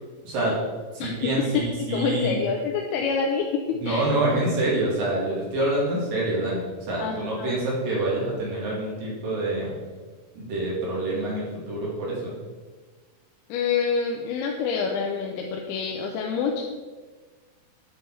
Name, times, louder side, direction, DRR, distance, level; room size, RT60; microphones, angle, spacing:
voice 1, 0.3-0.6 0.9-2.4 3.8-9.7 10.4-12.3, right 2 dB, 65° right, -6 dB, 3.7 m, -26 dB
voice 2, 1.5-4.1 7.0-7.6 13.5-16.6, left 5 dB, 90° left, 0 dB, 2.7 m, -27 dB
9.2 x 5.5 x 4.5 m, 1.4 s
omnidirectional pair, 4.4 m